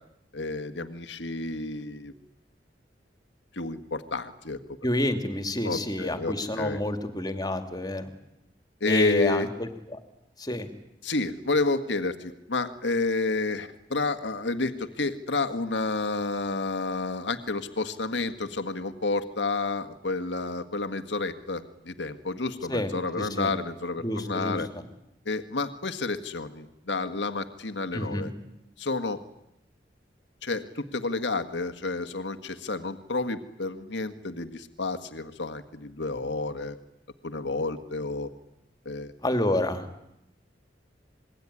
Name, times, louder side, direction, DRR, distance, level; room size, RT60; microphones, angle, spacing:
voice 1, 0.3-2.1 3.5-4.6 5.6-6.8 8.8-9.5 11.0-24.7 25.2-28.3 28.8-29.2 30.4-36.8 37.2-38.3 38.8-39.1, left 3 dB, 85° left, 10 dB, 1.7 m, -30 dB
voice 2, 4.8-8.1 8.9-9.7 10.4-10.7 22.7-23.5 24.0-24.6 27.9-28.3 39.2-39.8, left 1 dB, 25° left, 8 dB, 2.6 m, -28 dB
27.5 x 21.5 x 9.9 m, 0.83 s
head